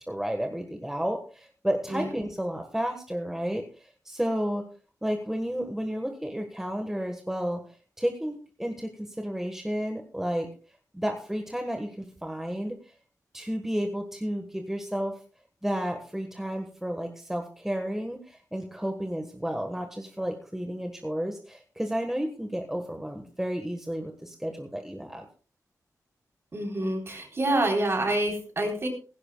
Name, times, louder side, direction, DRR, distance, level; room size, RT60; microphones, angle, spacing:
voice 1, 0.1-4.6 5.0-7.6 8.0-10.5 10.9-12.7 13.3-15.2 15.6-25.2, equal, 5° right, 4 dB, 1.3 m, -32 dB
voice 2, 26.5-28.9, right 1 dB, 40° right, 2 dB, 3.7 m, -27 dB
17.0 x 16.0 x 2.3 m, 0.37 s
wide cardioid pair, 130°, 6 cm